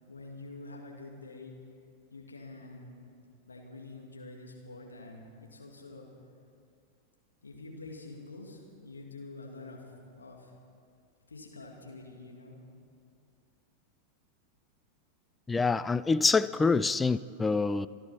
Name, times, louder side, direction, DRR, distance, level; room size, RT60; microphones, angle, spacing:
voice 1, 0.1-1.5 2.1-3.0 3.5-6.1 7.4-10.5 11.3-12.6, left 2 dB, 75° left, 0 dB, 2.4 m, -47 dB
voice 2, 15.5-17.9, left 4 dB, 10° left, 15 dB, 0.4 m, -26 dB
27.0 x 11.0 x 4.3 m, 2.4 s
figure-of-eight pair, 90°, 0 cm